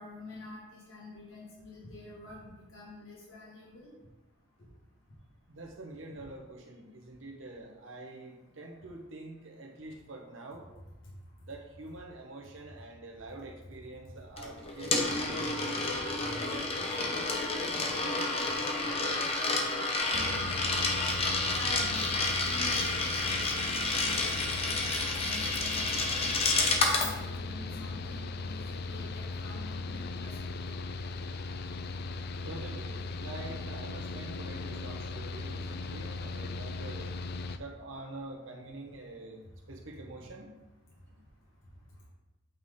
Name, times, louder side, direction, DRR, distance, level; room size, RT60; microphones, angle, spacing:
voice 1, 0.0-3.9 20.1-20.5 21.6-26.4 26.9-30.3, left 2 dB, 90° left, -5 dB, 1.7 m, -47 dB
voice 2, 5.5-10.7 11.5-15.6 32.4-37.1 37.6-39.4 39.7-40.5 41.1-41.2, right 2 dB, 80° right, 0 dB, 1.2 m, -46 dB
Coin (dropping), 14.4-27.1, left 2 dB, 30° left, 0.8 m, -30 dB
Mechanical fan, 20.1-37.6, left 3 dB, 55° left, 0.4 m, -38 dB
8.4 x 4.0 x 3.7 m, 1.1 s
head